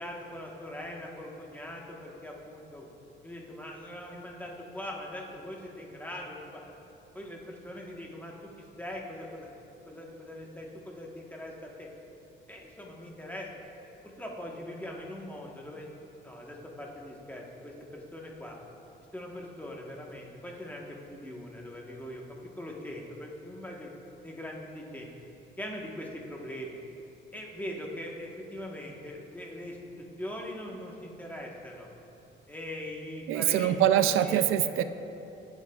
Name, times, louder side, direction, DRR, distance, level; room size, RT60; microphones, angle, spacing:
voice 1, 0.0-2.9 3.2-6.6 7.1-9.5 9.8-11.9 12.5-13.5 14.0-15.9 16.2-18.6 19.1-23.9 24.2-25.1 25.6-26.8 27.3-31.9 32.5-33.8 34.1-34.4, left 1 dB, 10° left, -2 dB, 1.2 m, -41 dB
voice 2, 33.3-34.8, right 11 dB, 90° right, 10 dB, 0.4 m, -24 dB
16.0 x 8.1 x 2.3 m, 2.9 s
cardioid pair, 120°, 20 cm